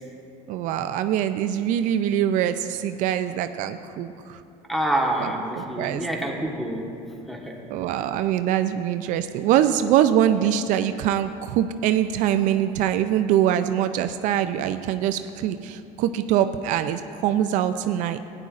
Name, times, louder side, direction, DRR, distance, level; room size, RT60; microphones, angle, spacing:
voice 1, 0.5-4.1 5.2-6.1 7.7-18.2, right 10 dB, 65° right, 10 dB, 0.4 m, -23 dB
voice 2, 4.7-6.9 7.3-7.5, right 1 dB, ahead, 0 dB, 1.3 m, -27 dB
15.0 x 9.9 x 2.5 m, 2.6 s
supercardioid pair, 110°, 14 cm